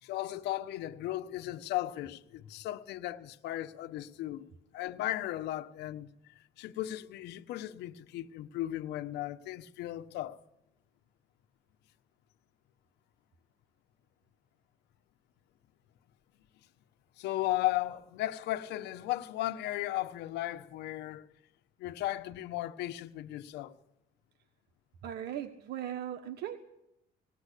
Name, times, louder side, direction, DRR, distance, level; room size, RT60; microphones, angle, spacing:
voice 1, 0.0-4.5 4.7-6.1 6.6-10.4 17.2-21.3 21.8-23.7, left 15 dB, 85° left, 1.2 m, -36 dB
voice 2, 25.0-26.6, right 10 dB, 75° right, 1.4 m, -38 dB
20.5 x 17.5 x 8.4 m
cardioid pair, 110°, 17 cm